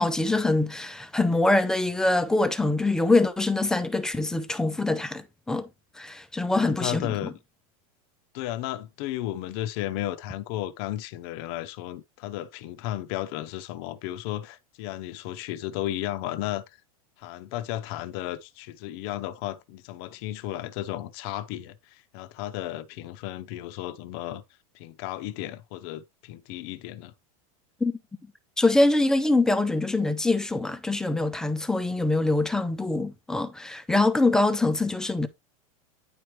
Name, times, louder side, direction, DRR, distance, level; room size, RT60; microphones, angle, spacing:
voice 1, 0.0-5.7 6.0-7.1 27.8-27.9 28.6-35.3, left 2 dB, 5° left, 0.4 m, -24 dB
voice 2, 6.5-7.3 8.3-16.6 17.2-24.4 24.7-27.1, left 14 dB, 45° left, 0.6 m, -34 dB
9.5 x 4.6 x 3.1 m
supercardioid pair, 165°, 18 cm